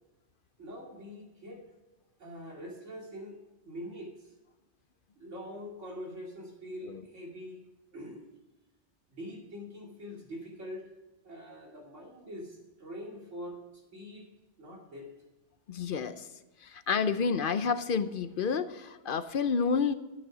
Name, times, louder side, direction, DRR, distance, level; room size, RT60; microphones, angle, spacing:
voice 1, 0.6-1.6 2.2-4.3 5.2-7.7 7.9-8.2 9.1-10.9 11.2-14.3 14.6-15.2, equal, 90° right, -1 dB, 2.9 m, -44 dB
voice 2, 15.7-16.3 16.6-19.9, left 5 dB, 55° left, 12 dB, 0.7 m, -29 dB
12.0 x 8.8 x 5.0 m, 1.1 s
omnidirectional pair, 1.2 m